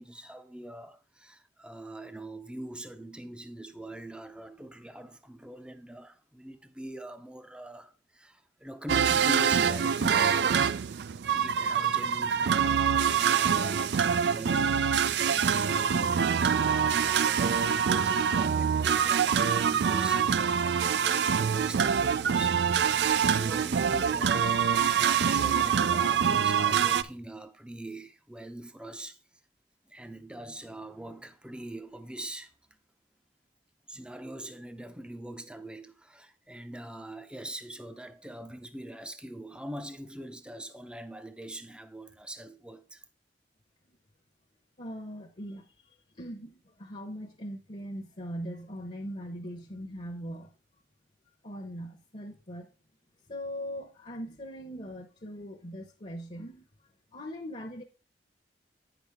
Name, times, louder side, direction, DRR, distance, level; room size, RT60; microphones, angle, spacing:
voice 1, 0.0-10.3 11.3-29.2 29.9-32.8 33.9-43.0, right 1 dB, 5° right, 0.6 m, -43 dB
sound 1, 8.9-27.0, right 7 dB, 65° right, 0.4 m, -25 dB
voice 2, 44.8-50.5 51.4-52.7 53.3-56.7 57.1-57.8, equal, 40° left, 0.9 m, -40 dB
9.1 x 6.0 x 3.5 m
head